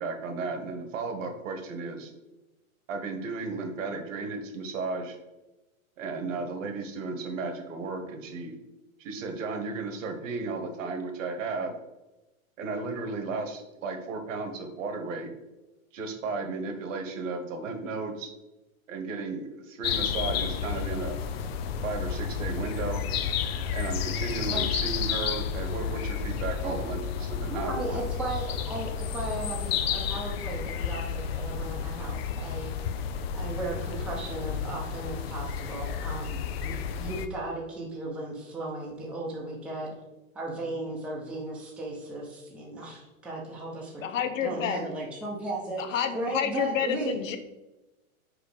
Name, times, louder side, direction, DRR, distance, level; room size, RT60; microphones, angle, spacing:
voice 1, 0.0-2.1 2.9-5.2 6.0-8.6 9.0-11.8 12.6-15.3 15.9-18.3 18.9-21.2 21.8-23.0 23.7-28.0 28.5-28.6, right 3 dB, 65° right, 6 dB, 1.4 m, -34 dB
sound 1, 19.8-37.3, left 7 dB, 45° left, 0.5 m, -31 dB
voice 2, 27.5-32.7 33.3-39.9 40.3-44.1 44.4-47.1, right 2 dB, 5° right, -4 dB, 0.8 m, -36 dB
voice 3, 44.0-44.9 45.8-47.4, left 8 dB, 65° left, 9 dB, 0.9 m, -29 dB
5.1 x 4.9 x 5.0 m, 1.0 s
hypercardioid pair, 150°, 42 cm